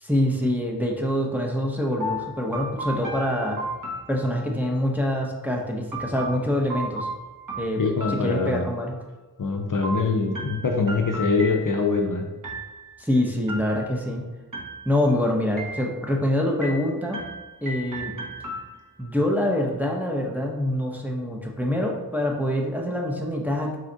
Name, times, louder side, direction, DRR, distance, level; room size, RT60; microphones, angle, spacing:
voice 1, 0.0-3.6 4.1-7.1 7.6-7.8 8.1-9.0 13.0-14.2 14.9-17.2 17.6-18.1 19.0-23.8, left 1 dB, 5° right, -1 dB, 0.6 m, -25 dB
sound 1, 2.0-4.7 5.9-8.9 9.8-12.0 12.4-13.0 13.5-14.2 14.5-15.2 15.6-16.2 16.6-19.1, right 1 dB, 55° right, 0.8 m, -35 dB
voice 2, 7.8-8.7 9.4-12.3, left 4 dB, 55° left, 2 dB, 0.5 m, -23 dB
4.2 x 2.4 x 3.8 m, 1.2 s
wide cardioid pair, 45°, 38 cm